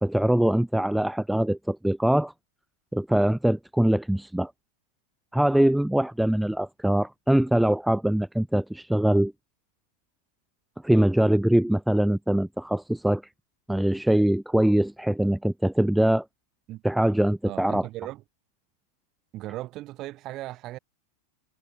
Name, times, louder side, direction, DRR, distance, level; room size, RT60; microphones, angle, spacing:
voice 1, 0.0-2.3 2.9-4.5 5.3-9.3 10.8-13.2 13.7-16.2 16.8-17.9, right 1 dB, ahead, 1.1 m, -23 dB
voice 2, 17.4-18.2 19.3-20.8, right 16 dB, 35° right, 7.7 m, -37 dB
figure-of-eight pair, 90°, 0 cm